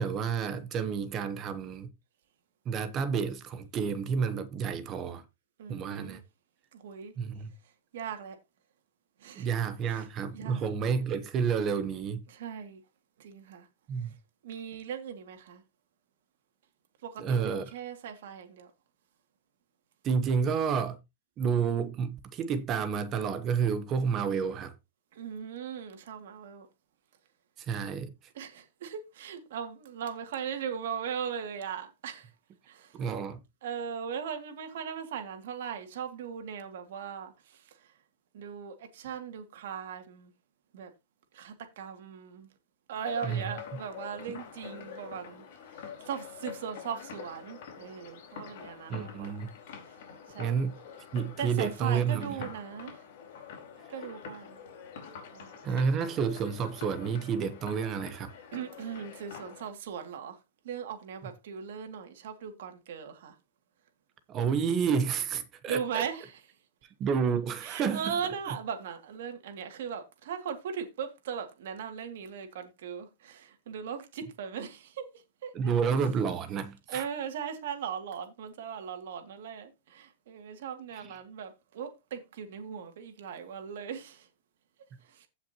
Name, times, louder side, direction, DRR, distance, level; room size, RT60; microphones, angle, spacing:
voice 1, 0.0-1.9 2.7-5.2 5.7-6.2 7.2-7.5 9.4-12.2 13.9-14.1 17.2-17.7 20.0-21.0 21.4-24.7 27.6-28.1 32.9-33.4 43.2-43.5 48.9-49.5 50.4-50.8 51.1-52.4 55.6-58.3 64.3-66.0 67.0-68.2 68.5-68.6 75.5-77.1 80.9-81.1, right 6 dB, 25° right, 0.9 m, -30 dB
voice 2, 5.6-6.2 6.7-7.1 7.9-8.4 9.2-9.5 10.3-10.6 12.3-12.8 13.2-13.7 14.4-15.6 17.0-18.7 25.1-26.7 28.3-32.3 32.7-32.9 33.6-37.6 38.3-40.3 40.7-40.9 41.3-42.5 42.9-45.4 45.7-49.3 50.3-50.6 51.4-53.0 53.9-54.6 55.3-55.5 58.5-60.4 60.6-63.3 65.7-66.3 67.6-75.1 75.4-75.5 76.9-84.3 85.1-85.3, right 7 dB, 60° right, 2.3 m, -38 dB
sound 1, 43.0-59.7, left 7 dB, 50° left, 4.2 m, -46 dB
16.0 x 5.8 x 2.9 m
supercardioid pair, 165°, 0 cm